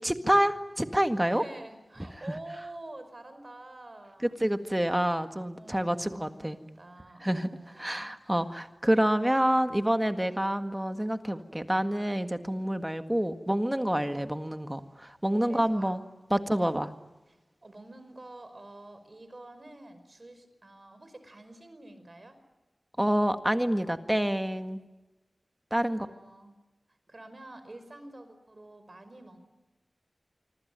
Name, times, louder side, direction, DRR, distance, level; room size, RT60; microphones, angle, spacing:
voice 1, 0.0-1.4 4.4-6.6 7.2-7.5 7.8-16.0 16.3-16.9 23.0-24.8 25.7-26.1, equal, 10° right, 8 dB, 1.8 m, -27 dB
voice 2, 1.3-4.4 5.5-8.1 8.4-8.5 15.5-16.0 17.3-22.4 25.8-26.5 27.1-29.4, right 2 dB, 40° right, 10 dB, 5.2 m, -48 dB
25.5 x 25.0 x 9.0 m, 1.1 s
wide cardioid pair, 80°, 0 cm